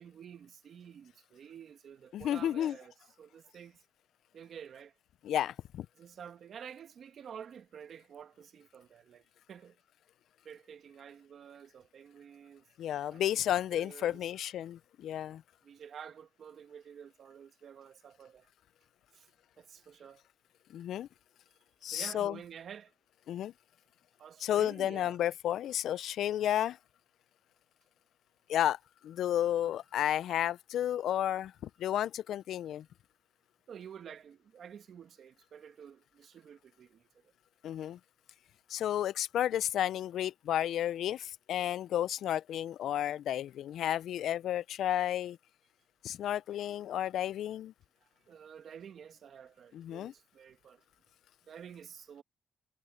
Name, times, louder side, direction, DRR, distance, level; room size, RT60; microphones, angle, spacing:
voice 1, 0.0-3.8 4.3-4.9 6.0-9.8 10.4-12.6 13.1-14.2 15.6-18.5 19.1-19.3 19.6-20.2 21.8-22.9 24.2-25.2 29.6-29.7 33.7-37.3 48.0-50.8 51.4-52.2, right 8 dB, 60° right, 1.6 m, -50 dB
voice 2, 2.1-2.8 5.2-5.9 12.8-15.4 20.7-21.1 21.8-22.3 23.3-23.5 24.4-26.8 28.5-32.8 37.6-38.0 38.7-45.4 46.0-47.7 49.7-50.1, left 11 dB, 75° left, 0.3 m, -32 dB
cardioid pair, 90°, 0 cm